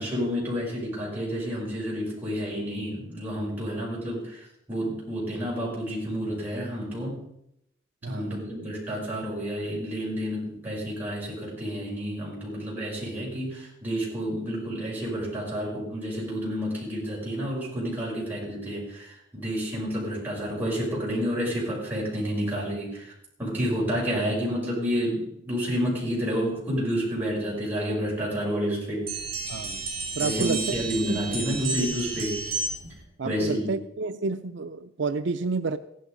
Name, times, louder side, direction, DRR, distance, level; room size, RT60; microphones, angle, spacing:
voice 1, 0.0-7.2 8.1-23.1 23.4-29.1 30.2-32.4 32.8-32.9 33.2-33.7, equal, 10° right, 6.2 m, -30 dB
voice 2, 8.0-8.4 29.5-29.9 30.2-30.8 31.1-31.2 33.2-35.8, right 4 dB, 70° right, 0.5 m, -30 dB
sound 1, 29.1-33.0, right 3 dB, 30° right, 4.3 m, -32 dB
15.0 x 12.0 x 5.2 m
head